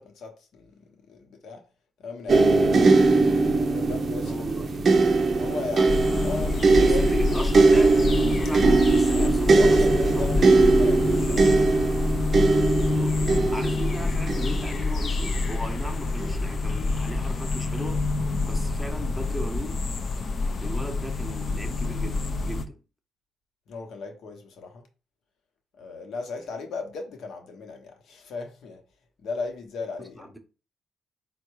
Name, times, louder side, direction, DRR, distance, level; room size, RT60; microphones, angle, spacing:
voice 1, 0.0-1.6 2.0-2.7 3.4-4.9 5.2-7.4 9.1-11.5 23.7-24.8 25.7-28.8 29.2-30.3, left 4 dB, 70° left, 1.0 m, -37 dB
sound 1, 2.3-15.4 16.2-16.4, right 3 dB, 45° right, 0.5 m, -21 dB
voice 2, 4.3-4.7 6.8-10.6 12.9-18.1 18.4-19.9 20.6-22.8 30.2-30.4, equal, ahead, 0.9 m, -37 dB
sound 2, 5.9-22.7, left 3 dB, 45° left, 0.5 m, -27 dB
4.3 x 2.3 x 4.6 m
cardioid pair, 90°, 0 cm